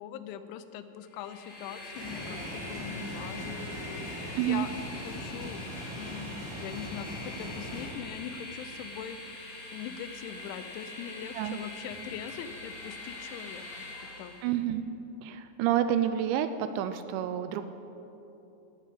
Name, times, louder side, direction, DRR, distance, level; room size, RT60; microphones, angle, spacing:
voice 1, 0.0-4.7 5.0-5.6 6.0-6.3 6.6-9.4 9.7-13.7 14.2-14.3, left 9 dB, 90° left, 11 dB, 3.1 m, -42 dB
Train, 1.1-14.5, left 2 dB, 40° left, 4.4 m, -43 dB
sound 1, 1.9-7.9, equal, 10° right, 2.8 m, -41 dB
voice 2, 4.4-4.7 11.4-11.6 14.4-14.9 15.2-17.7, right 10 dB, 80° right, 10 dB, 2.7 m, -29 dB
17.0 x 6.1 x 8.3 m, 3.0 s
omnidirectional pair, 5.3 m